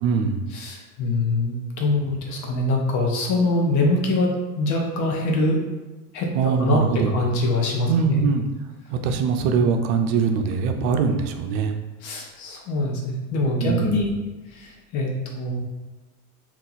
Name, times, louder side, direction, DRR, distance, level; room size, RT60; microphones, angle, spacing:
voice 1, 0.0-0.5 6.3-7.1 7.9-8.4 8.9-11.8 13.6-14.0, right 5 dB, 70° right, 6 dB, 0.6 m, -22 dB
voice 2, 0.5-5.6 6.1-6.3 6.6-8.2 12.0-14.1 14.5-15.6, left 2 dB, 45° left, 0 dB, 0.8 m, -24 dB
2.9 x 2.4 x 3.9 m, 1.1 s
supercardioid pair, 135°, 42 cm